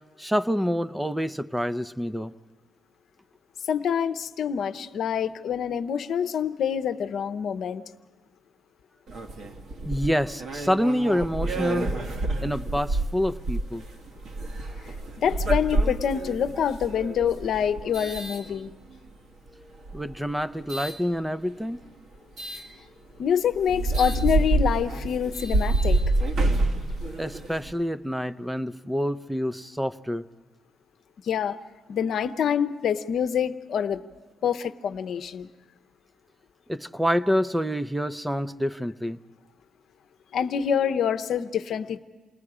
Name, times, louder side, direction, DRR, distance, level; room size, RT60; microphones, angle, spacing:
voice 1, 0.2-2.3 9.9-11.9 12.4-13.8 19.9-21.8 27.2-30.2 36.7-39.2, equal, 5° right, 13 dB, 0.6 m, -27 dB
voice 2, 3.7-7.8 15.2-18.7 23.2-26.3 31.2-31.5 31.9-34.0 34.4-35.5 40.3-42.0, left 8 dB, 65° left, 10 dB, 0.8 m, -26 dB
sound 1, 9.1-19.1 19.7-21.0 22.4-22.6 23.2-23.3 23.5-27.7, right 2 dB, 65° right, 1.8 m, -28 dB
28.5 x 19.0 x 4.9 m, 1.4 s
cardioid pair, 90°, 0 cm